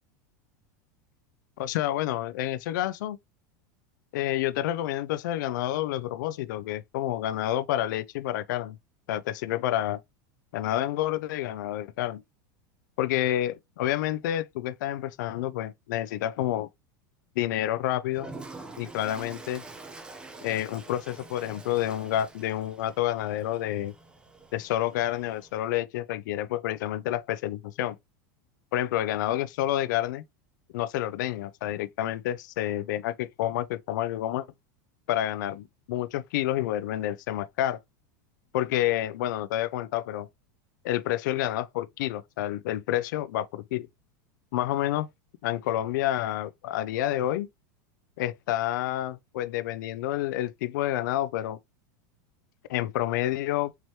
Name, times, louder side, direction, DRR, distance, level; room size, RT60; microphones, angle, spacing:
voice 1, 1.6-3.2 4.1-8.8 9.1-10.0 10.5-12.2 13.0-16.7 17.4-18.3 18.8-19.6 20.4-23.9 24.5-28.0 28.7-30.2 30.7-34.5 35.1-37.8 38.5-40.3 40.8-43.9 44.5-45.1 45.4-47.5 48.2-51.6 52.7-53.7, left 13 dB, 75° left, 0.4 m, -29 dB
Toilet flush, 18.1-25.6, right 3 dB, 10° right, 0.6 m, -46 dB
4.6 x 3.0 x 2.7 m
supercardioid pair, 135°, 10 cm